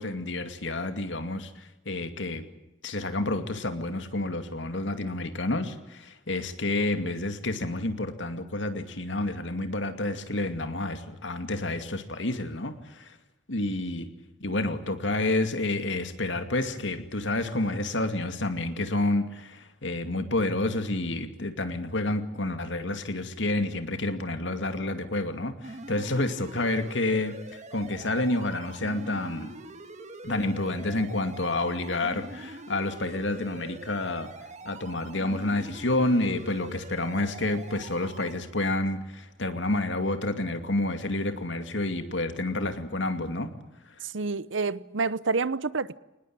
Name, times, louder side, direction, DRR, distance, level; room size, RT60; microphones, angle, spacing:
voice 1, 0.0-2.4 2.8-13.2 13.5-14.1 14.4-29.6 30.2-34.3 34.6-43.5, left 2 dB, 70° left, 2.4 m, -29 dB
sound 1, 25.6-38.3, right 2 dB, 40° right, 1.9 m, -44 dB
voice 2, 44.0-46.0, right 4 dB, 85° right, 0.9 m, -28 dB
24.5 x 20.0 x 8.9 m
head